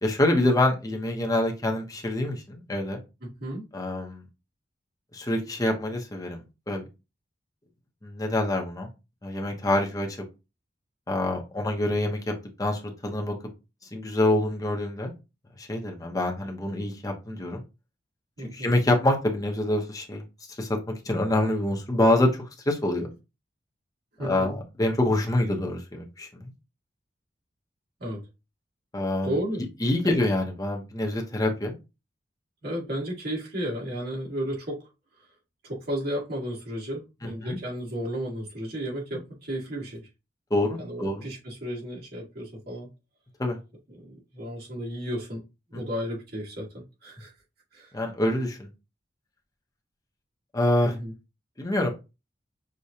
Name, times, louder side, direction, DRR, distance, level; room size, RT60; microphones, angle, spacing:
voice 1, 0.0-3.0 3.7-4.2 5.1-6.4 6.7-6.8 8.0-8.9 9.2-10.1 11.1-12.3 12.6-13.3 13.9-15.1 15.6-17.6 18.4-20.2 20.6-23.1 24.2-26.5 28.9-29.3 29.8-31.8 37.2-37.6 40.5-41.2 43.4-43.6 45.7-45.8 47.9-48.7 50.5-50.9 51.6-51.9, left 1 dB, 20° left, 2 dB, 0.9 m, -26 dB
voice 2, 3.2-3.6 18.4-18.7 24.2-24.5 28.0-28.2 29.2-29.6 30.0-30.1 32.6-34.8 35.2-35.3 35.6-40.1 40.8-42.9 43.9-45.4 45.7-47.3 47.7-47.9 50.8-51.1, equal, 60° right, -4 dB, 2.1 m, -33 dB
6.4 x 2.4 x 2.8 m, 0.27 s
head